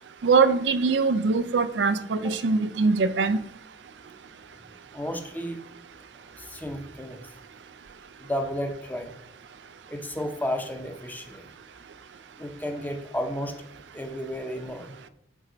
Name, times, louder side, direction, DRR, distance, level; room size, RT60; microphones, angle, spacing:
voice 1, 0.2-3.4, right 4 dB, 75° right, 0.4 m, -22 dB
voice 2, 4.9-5.6 6.4-7.2 8.2-9.1 9.9-11.4 12.4-13.5 13.9-15.1, equal, 10° left, 0.8 m, -32 dB
7.3 x 4.5 x 3.9 m
head